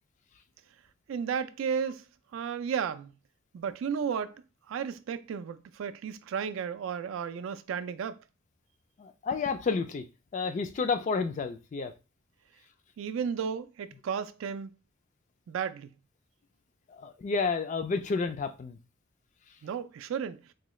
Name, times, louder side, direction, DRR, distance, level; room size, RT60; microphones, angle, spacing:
voice 1, 1.1-2.0 2.3-3.1 3.5-8.2 13.0-14.7 15.5-15.9 19.6-20.4, right 7 dB, 65° right, 0.3 m, -33 dB
voice 2, 9.0-10.1 10.3-11.9 16.9-18.8, left 4 dB, 35° left, 0.3 m, -30 dB
3.7 x 2.2 x 3.1 m
head